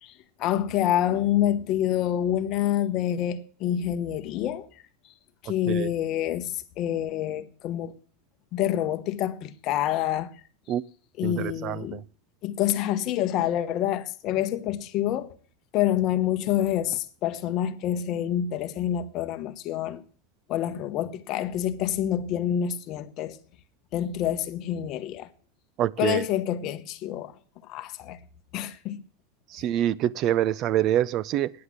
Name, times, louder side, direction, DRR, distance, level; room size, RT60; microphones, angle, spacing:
voice 1, 0.4-4.7 5.4-7.9 8.5-10.3 11.2-12.0 12.4-15.4 15.7-20.0 20.5-23.4 23.9-25.3 26.0-27.3 27.6-28.2 28.5-29.0, left 11 dB, 35° left, 1.0 m, -27 dB
voice 2, 11.2-12.0 25.8-26.2 29.5-31.5, right 12 dB, 35° right, 0.5 m, -26 dB
9.6 x 8.2 x 8.8 m
supercardioid pair, 160°, 0 cm